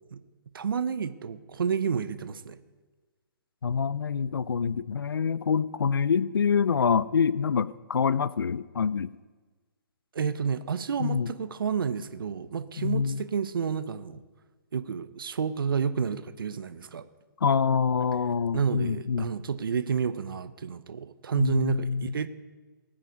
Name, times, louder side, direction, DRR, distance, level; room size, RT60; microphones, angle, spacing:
voice 1, 0.5-2.6 10.1-14.2 14.7-17.1 18.5-22.3, right 6 dB, 75° right, 13 dB, 0.8 m, -30 dB
voice 2, 3.6-9.1 11.0-11.3 12.8-13.2 17.4-19.3 21.4-22.1, left 6 dB, 90° left, 18 dB, 0.5 m, -26 dB
19.5 x 8.9 x 5.2 m, 1.3 s
hypercardioid pair, 145°, 12 cm